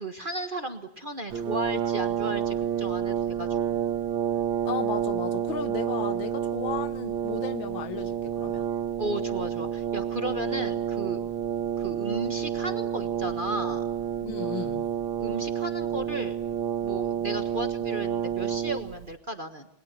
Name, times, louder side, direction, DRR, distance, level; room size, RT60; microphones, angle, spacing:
voice 1, 0.0-3.6 9.0-11.2 11.8-13.8 15.2-16.4 16.8-19.7, right 1 dB, 30° right, 1.3 m, -34 dB
Brass instrument, 1.3-19.1, right 9 dB, 80° right, 2.1 m, -29 dB
voice 2, 4.6-8.7 14.2-14.9, left 9 dB, 75° left, 2.0 m, -35 dB
28.0 x 22.0 x 8.2 m
omnidirectional pair, 2.1 m